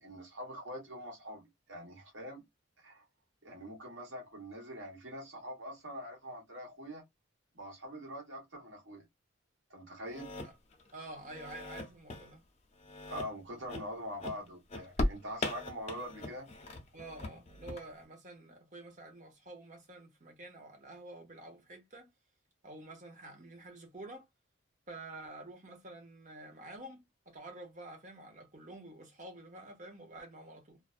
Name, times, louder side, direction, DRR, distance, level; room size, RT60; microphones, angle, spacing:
voice 1, 0.0-2.4 2.8-3.1 3.4-7.0 7.5-9.0 9.7-10.3 13.1-16.5, equal, 65° right, 1.3 m, -44 dB
sound 1, 10.1-10.9 11.2-12.3 12.8-13.3 13.7-14.0 14.2-17.8, left 1 dB, 30° left, 0.5 m, -39 dB
voice 2, 10.9-12.4 16.9-22.1 22.6-24.3 24.9-30.8, right 2 dB, 35° right, 0.8 m, -49 dB
2.5 x 2.1 x 2.4 m
head